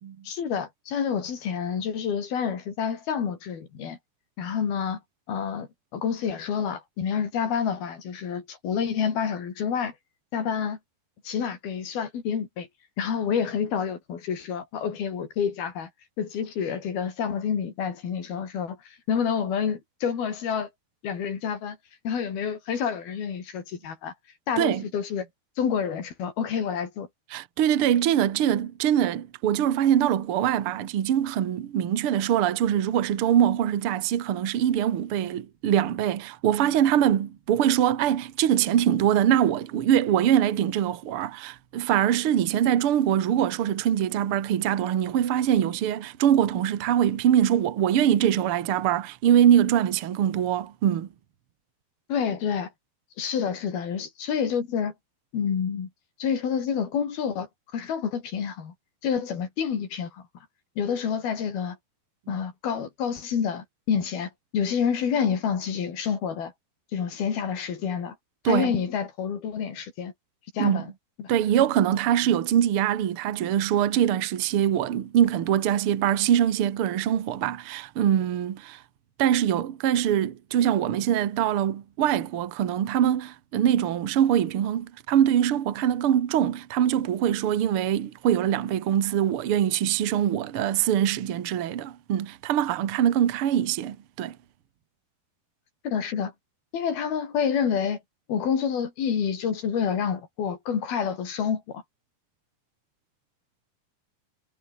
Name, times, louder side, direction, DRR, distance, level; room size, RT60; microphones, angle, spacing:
voice 1, 0.3-4.0 4.4-5.0 5.3-9.9 10.3-10.8 11.3-12.7 13.0-15.9 16.2-20.7 21.0-21.8 22.1-24.1 24.5-25.3 25.6-27.1 52.1-52.7 53.2-54.9 55.3-55.9 56.2-58.7 59.0-60.2 60.8-61.8 62.3-66.5 66.9-68.2 68.5-70.1 70.5-70.9 71.2-71.3 95.8-96.3 96.7-98.0 98.3-101.8, left 7 dB, 65° left, 5.5 m, -28 dB
voice 2, 24.6-24.9 27.3-51.1 68.4-68.7 70.6-70.9 71.3-78.8 79.2-94.4, right 10 dB, 60° right, 1.4 m, -23 dB
omnidirectional pair, 4.8 m